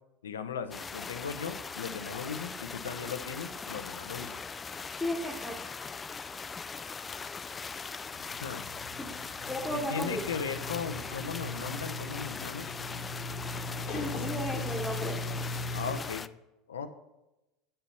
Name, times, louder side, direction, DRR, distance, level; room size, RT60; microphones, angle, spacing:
voice 1, 0.2-4.4 8.4-8.7 9.7-12.7 15.7-16.3 16.7-16.9, left 6 dB, 80° left, 11 dB, 0.6 m, -37 dB
sound 1, 0.7-16.3, left 5 dB, 25° left, 0.3 m, -40 dB
voice 2, 5.0-5.6 9.0-9.1 9.5-10.2 13.9-15.2, equal, 10° left, -2 dB, 1.3 m, -34 dB
Sliding door, 8.1-16.0, left 2 dB, 50° left, 1.1 m, -39 dB
7.8 x 4.4 x 6.9 m, 0.98 s
hypercardioid pair, 75°, 0 cm